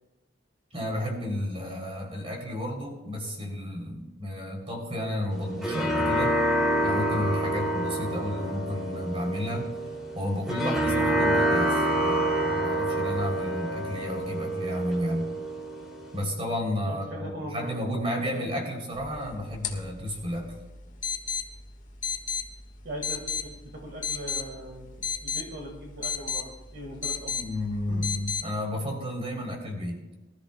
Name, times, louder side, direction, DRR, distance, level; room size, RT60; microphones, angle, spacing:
voice 1, 0.7-6.4 6.8-9.7 10.1-15.3 16.1-20.5 27.3-30.0, left 1 dB, 30° right, 1 dB, 3.2 m, -32 dB
sound 1, 5.3-16.2, right 1 dB, ahead, 2.6 m, -27 dB
voice 2, 16.9-17.7 22.8-24.9 25.2-27.4 27.9-28.1, right 1 dB, 60° right, 1 dB, 1.7 m, -40 dB
sound 2, 18.9-28.4, left 6 dB, 40° left, 1.4 m, -35 dB
22.5 x 13.5 x 2.2 m, 1.1 s
head